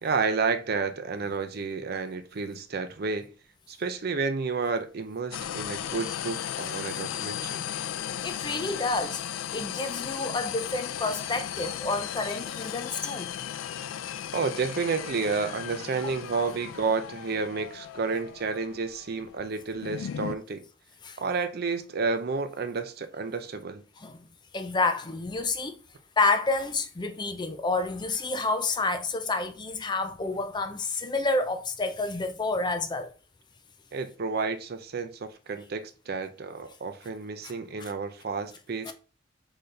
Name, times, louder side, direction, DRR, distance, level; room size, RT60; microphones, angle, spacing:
voice 1, 0.0-3.3 3.7-7.6 14.3-20.6 21.2-23.8 33.9-38.9, right 4 dB, 50° right, 0.5 m, -31 dB
sound 1, 5.3-20.4, left 9 dB, 85° left, 0.3 m, -36 dB
voice 2, 7.9-13.3 21.0-21.2 24.0-24.3 24.5-25.8 26.2-33.1 37.4-37.5 37.8-37.9 38.9-39.0, left 3 dB, 25° left, 0.5 m, -29 dB
4.0 x 3.9 x 3.3 m
head